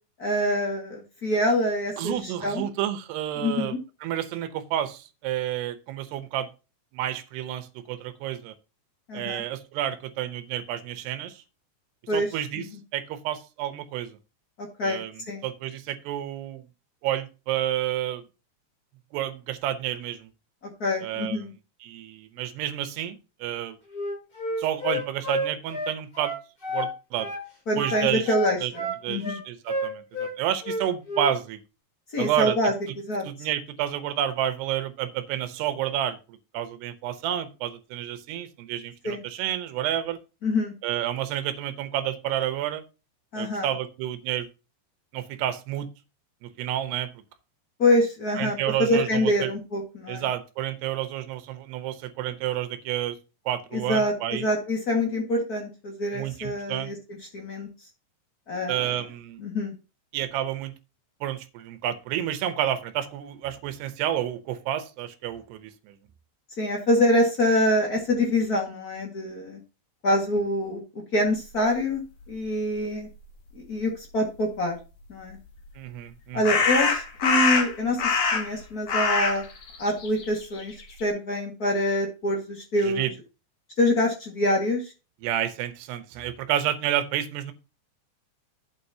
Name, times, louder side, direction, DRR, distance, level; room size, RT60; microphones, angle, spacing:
voice 1, 0.2-2.6 3.4-3.8 9.1-9.4 12.1-12.3 12.6-12.7 14.6-15.0 15.3-15.4 20.8-21.5 27.7-29.4 32.1-32.7 33.0-33.2 39.0-39.2 40.4-40.7 43.3-43.7 47.8-50.2 53.7-56.9 57.3-57.7 58.5-58.9 59.4-59.7 66.6-69.6 70.0-70.8 71.1-72.0 72.3-73.1 73.5-74.8 75.1-75.4 76.3-79.4 79.8-80.7 81.0-83.1 83.8-84.9, left 1 dB, 80° left, 0 dB, 0.8 m, -25 dB
voice 2, 2.0-6.5 6.9-8.5 9.1-11.4 12.1-12.7 12.9-14.2 14.8-16.6 17.0-18.2 19.1-20.3 21.0-21.4 21.8-23.8 24.6-26.3 26.7-27.3 27.8-28.3 28.6-28.7 29.0-31.6 32.2-32.6 33.3-40.2 40.8-42.8 43.4-44.5 45.1-45.9 46.4-47.1 48.4-49.5 50.1-53.2 53.5-54.4 56.1-56.9 58.7-59.4 60.1-60.7 61.2-66.0 75.8-76.6 82.8-83.1 85.2-87.5, right 11 dB, 75° right, 10 dB, 2.9 m, -30 dB
Wind instrument woodwind instrument, 23.9-26.9 27.2-27.4 27.8-30.3 30.6-31.3, left 1 dB, 20° left, 5.4 m, -30 dB
sound 1, 75.3-75.4 76.4-78.6 78.9-81.0, left 5 dB, 50° left, 2.9 m, -24 dB
11.0 x 8.8 x 2.8 m, 0.30 s
omnidirectional pair, 5.1 m